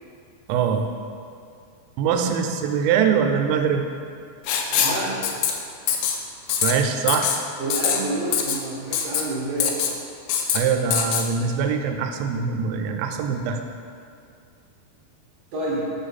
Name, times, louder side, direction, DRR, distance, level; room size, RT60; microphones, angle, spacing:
voice 1, 0.5-0.9 2.0-3.9 6.6-7.4 10.5-13.6, right 6 dB, 90° right, 5 dB, 2.9 m, -23 dB
Writing, 4.5-5.0 5.2-5.5 5.9-6.2 6.5-6.7 7.1-7.4 7.7-8.0 8.3-8.6 8.9-9.2 9.6-9.9 10.3-10.6 10.9-11.2, left 8 dB, 85° left, 2.5 m, -22 dB
voice 2, 4.7-5.3 7.6-9.8 15.5-15.9, right 2 dB, 70° right, -6 dB, 2.2 m, -28 dB
5.9 x 5.7 x 4.1 m, 2.4 s
omnidirectional pair, 5.1 m